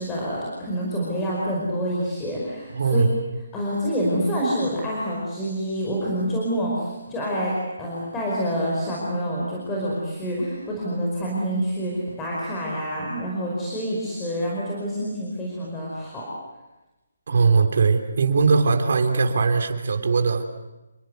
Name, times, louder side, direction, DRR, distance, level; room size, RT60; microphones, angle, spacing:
voice 1, 0.0-3.1 3.5-16.3, equal, 10° left, -5 dB, 5.2 m, -27 dB
voice 2, 2.7-3.1 17.3-20.4, right 4 dB, 55° right, 5 dB, 3.5 m, -20 dB
29.0 x 22.5 x 8.1 m, 1.1 s
hypercardioid pair, 170°, 0 cm